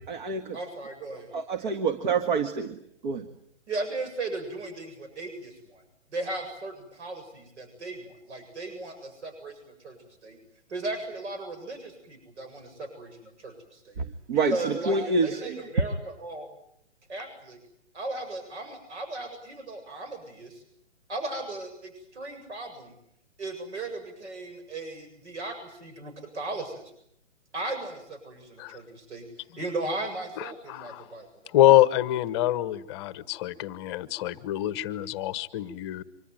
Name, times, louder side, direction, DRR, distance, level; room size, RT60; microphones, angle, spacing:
voice 1, 0.0-0.6 1.3-3.3 14.0-15.7, right 4 dB, 40° right, 9 dB, 1.9 m, -28 dB
voice 2, 0.5-1.3 3.7-5.8 6.1-10.0 10.2-10.4 10.7-14.0 14.5-16.5 17.1-17.6 17.9-20.6 21.1-22.9 23.4-26.8 27.5-29.3 29.6-31.5, right 2 dB, 70° right, 7 dB, 7.8 m, -36 dB
voice 3, 30.4-31.1 31.5-36.0, left 13 dB, 20° left, 15 dB, 1.0 m, -25 dB
25.5 x 25.0 x 9.1 m, 0.74 s
hypercardioid pair, 150°, 36 cm